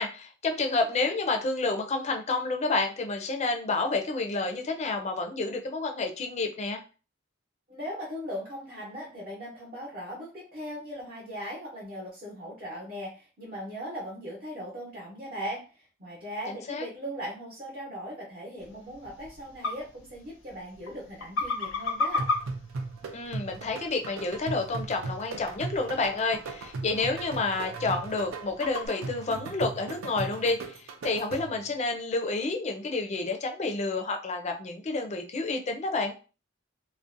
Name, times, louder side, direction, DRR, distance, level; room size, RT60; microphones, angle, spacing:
voice 1, 0.0-6.8 16.5-16.9 23.1-30.8 31.0-36.1, left 3 dB, 35° left, 4 dB, 0.4 m, -29 dB
voice 2, 7.7-22.3, equal, 45° right, -4 dB, 0.8 m, -39 dB
sound 1, 18.6-28.9, left 3 dB, 80° left, 0.6 m, -37 dB
sound 2, 22.2-31.7, right 3 dB, 85° right, 0.4 m, -38 dB
2.5 x 2.1 x 2.5 m, 0.34 s
head